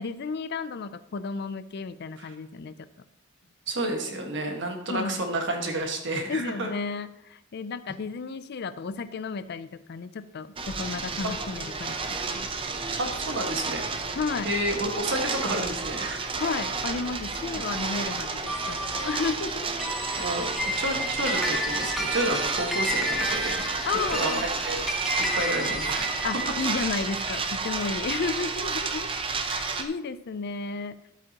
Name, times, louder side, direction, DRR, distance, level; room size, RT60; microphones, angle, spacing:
voice 1, 0.0-2.9 4.9-5.2 6.3-12.5 14.2-14.5 16.4-19.7 23.8-24.5 26.2-29.1 29.5-31.0, left 4 dB, 50° left, 14 dB, 0.4 m, -33 dB
voice 2, 3.7-6.7 11.2-11.3 13.0-13.8 14.4-16.3 17.5-17.6 20.2-23.6 24.1-24.8 25.3-26.1, right 1 dB, 60° right, 3 dB, 1.6 m, -30 dB
sound 1, 10.6-29.8, right 4 dB, 25° right, 0.6 m, -31 dB
sound 2, 18.5-29.1, equal, ahead, 1.1 m, -32 dB
11.5 x 8.1 x 2.9 m, 0.84 s
head